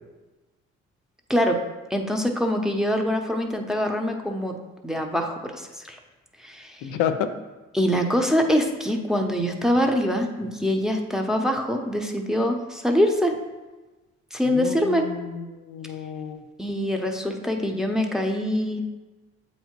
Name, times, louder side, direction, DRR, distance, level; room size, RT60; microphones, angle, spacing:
voice 1, 1.3-1.6 1.9-4.6 4.8-6.0 6.4-6.9 7.7-13.4 14.3-15.1 16.6-18.8, equal, ahead, 2 dB, 0.8 m, -24 dB
voice 2, 6.8-7.3 14.5-16.4, left 9 dB, 90° left, 8 dB, 0.5 m, -30 dB
7.7 x 2.8 x 4.5 m, 1.2 s
supercardioid pair, 65°, 30 cm